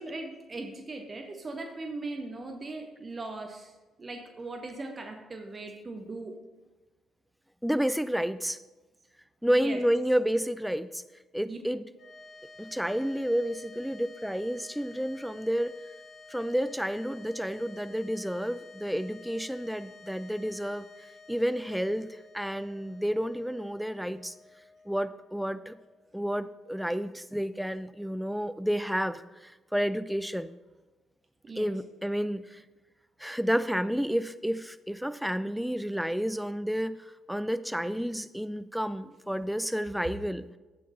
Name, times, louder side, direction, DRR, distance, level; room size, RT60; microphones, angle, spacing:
voice 1, 0.0-3.7 4.0-6.3 9.5-9.8 11.4-11.6 31.4-31.7, right 2 dB, 30° right, 4 dB, 1.0 m, -39 dB
voice 2, 7.6-8.6 9.4-11.0 11.3-11.8 12.6-15.7 16.3-20.9 21.3-22.1 22.3-24.3 24.9-25.7 26.1-30.5 31.6-32.6 33.2-40.4, equal, ahead, 13 dB, 0.4 m, -30 dB
sound 1, 11.9-26.4, left 4 dB, 40° left, 1.4 m, -52 dB
12.5 x 8.3 x 2.8 m, 1.2 s
figure-of-eight pair, 45°, 0 cm